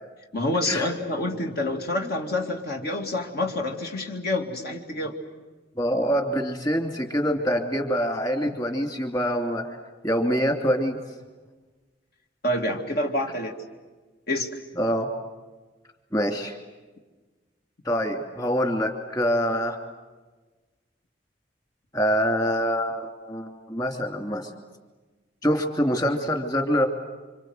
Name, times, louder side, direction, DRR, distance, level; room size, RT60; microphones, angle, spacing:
voice 1, 0.3-5.1 8.4-8.6 12.4-13.5 14.3-14.5, left 1 dB, 60° left, 2 dB, 2.5 m, -27 dB
voice 2, 5.8-9.6 10.0-11.0 14.8-15.1 16.1-16.6 17.8-19.8 21.9-24.5 25.4-26.9, equal, 20° left, 4 dB, 2.9 m, -25 dB
28.5 x 26.0 x 8.0 m, 1.3 s
head